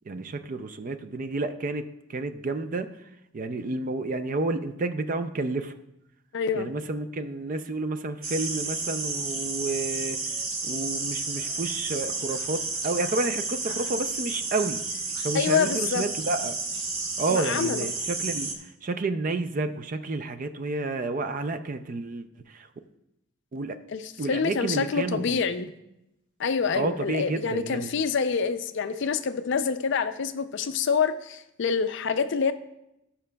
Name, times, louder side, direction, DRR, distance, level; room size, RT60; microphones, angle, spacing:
voice 1, 0.1-2.9 3.3-5.7 6.5-10.3 10.6-14.8 15.2-16.6 17.2-22.7 23.5-23.8 24.2-25.4 26.8-27.9, right 2 dB, 35° right, 10 dB, 0.4 m, -30 dB
voice 2, 6.3-6.7 15.3-16.0 17.3-17.9 23.9-25.7 26.4-32.5, left 6 dB, 55° left, 10 dB, 0.4 m, -27 dB
sound 1, 8.2-18.5, right 3 dB, 70° right, 1.1 m, -31 dB
16.0 x 5.7 x 2.2 m, 0.87 s
head